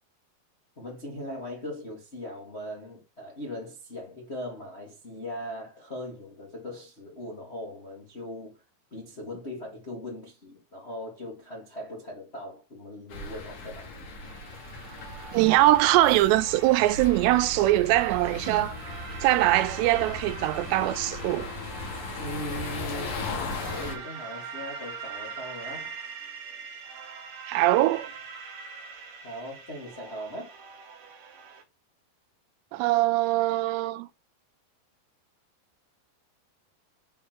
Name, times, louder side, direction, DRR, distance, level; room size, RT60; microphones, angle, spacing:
voice 1, 0.8-8.5 8.9-13.9 22.2-23.1 23.5-25.9 29.2-30.5, left 1 dB, 85° left, 0.5 m, -39 dB
sound 1, 13.1-24.0, left 2 dB, 55° left, 2.7 m, -37 dB
sound 2, 14.2-31.6, right 5 dB, 65° right, 2.2 m, -43 dB
voice 2, 15.3-18.8 19.2-21.5 27.5-28.1 32.7-34.1, right 16 dB, 90° right, 2.8 m, -22 dB
7.1 x 4.8 x 4.5 m
omnidirectional pair, 4.8 m